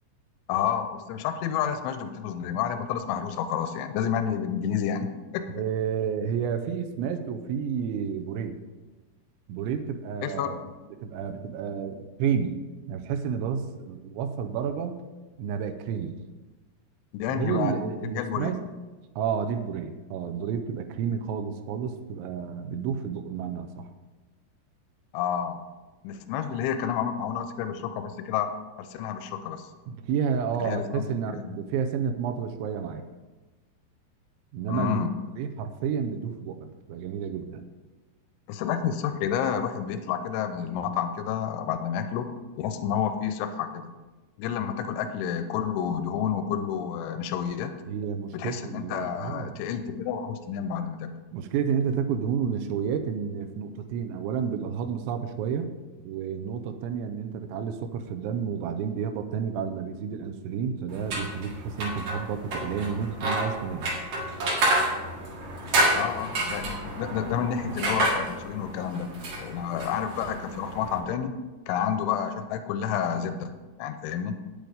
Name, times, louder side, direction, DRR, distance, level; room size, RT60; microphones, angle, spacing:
voice 1, 0.5-5.1 5.3-5.5 10.2-10.7 17.1-18.5 25.1-25.6 26.0-28.5 28.8-29.7 30.6-31.1 31.3-31.6 34.7-35.1 38.5-42.3 42.6-43.9 44.4-47.7 48.3-51.1 65.9-69.1 69.4-71.3 71.7-73.5 73.8-74.4, left 8 dB, 85° left, 8 dB, 2.9 m, -30 dB
voice 2, 5.5-8.6 9.5-10.6 10.9-12.6 12.9-15.0 15.4-16.2 17.3-18.7 19.2-23.9 29.9-33.0 34.5-35.0 35.4-37.7 47.9-49.6 51.3-55.7 56.0-63.9, right 7 dB, 85° right, 5 dB, 2.7 m, -30 dB
sound 1, 60.9-71.0, right 1 dB, 55° right, 2.2 m, -29 dB
9.3 x 8.5 x 5.1 m, 1.2 s
omnidirectional pair, 5.9 m